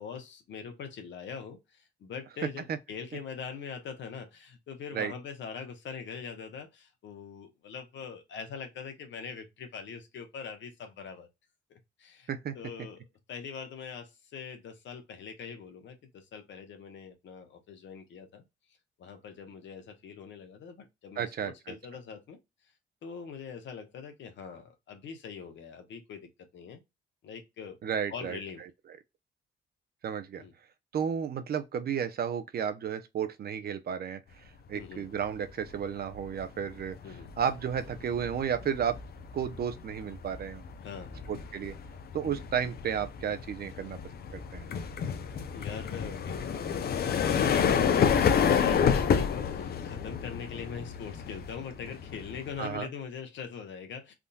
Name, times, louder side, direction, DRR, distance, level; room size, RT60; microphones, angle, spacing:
voice 1, 0.0-11.3 11.7-12.3 12.5-18.4 19.0-22.4 23.0-26.8 27.2-27.8 28.1-28.6 30.4-30.5 34.7-35.1 37.0-37.3 40.8-41.3 42.2-42.4 45.5-54.1, left 6 dB, 70° left, 1.0 m, -42 dB
voice 2, 21.2-21.7 27.8-28.4 30.0-30.4 30.9-34.4 34.7-37.0 37.4-39.0 39.3-40.6 41.3-41.8 42.1-44.0 44.3-44.6 52.6-52.9, right 8 dB, 50° right, 0.6 m, -32 dB
sound 1, 35.4-35.7 36.1-52.8, left 7 dB, 50° left, 0.6 m, -30 dB
3.6 x 2.6 x 2.2 m
cardioid pair, 90°, 20 cm